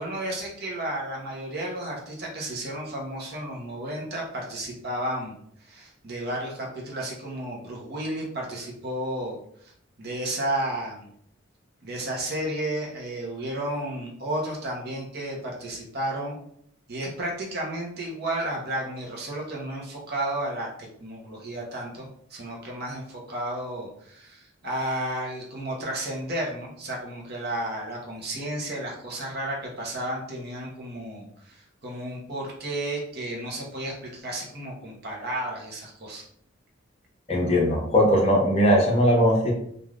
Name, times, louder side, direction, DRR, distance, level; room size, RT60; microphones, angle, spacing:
voice 1, 0.0-5.3 5.6-9.4 10.0-11.1 11.8-16.4 16.9-36.2, right 1 dB, 50° right, -2 dB, 0.9 m, -32 dB
voice 2, 37.3-39.5, equal, 30° left, -2 dB, 0.8 m, -20 dB
3.3 x 2.6 x 2.4 m, 0.69 s
head